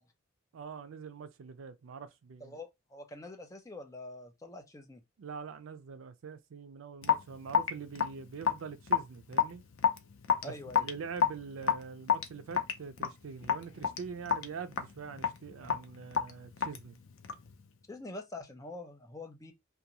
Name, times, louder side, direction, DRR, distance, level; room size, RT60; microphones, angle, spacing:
voice 1, 0.5-2.6 5.2-9.6 10.4-10.5 10.8-17.0, right 5 dB, 75° right, 0.4 m, -44 dB
voice 2, 2.4-5.0 10.4-10.9 17.9-19.5, left 2 dB, 15° left, 0.5 m, -45 dB
Raindrop / Drip, 7.0-17.5, left 7 dB, 75° left, 0.5 m, -31 dB
2.5 x 2.2 x 2.8 m
head